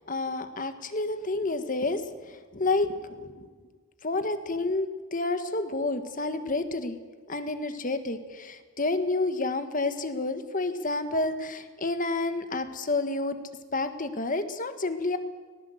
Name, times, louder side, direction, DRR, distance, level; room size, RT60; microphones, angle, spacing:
voice 1, 0.0-3.5 4.0-7.0 7.3-13.4 13.7-15.2, left 2 dB, 40° left, 9 dB, 1.6 m, -29 dB
18.5 x 18.5 x 8.0 m, 1.4 s
head